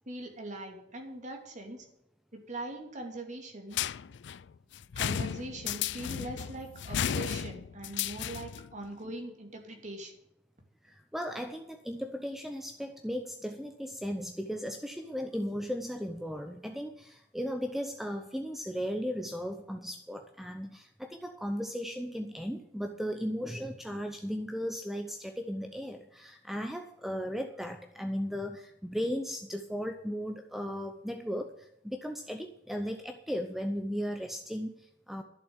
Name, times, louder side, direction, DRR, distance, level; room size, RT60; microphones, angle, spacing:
voice 1, 0.1-1.9 2.3-3.8 5.0-10.1, right 2 dB, 40° right, 3 dB, 2.7 m, -41 dB
sound 1, 3.7-8.7, left 8 dB, 65° left, 0.4 m, -34 dB
voice 2, 10.8-35.2, equal, ahead, 5 dB, 0.8 m, -36 dB
11.5 x 7.1 x 9.8 m, 0.79 s
head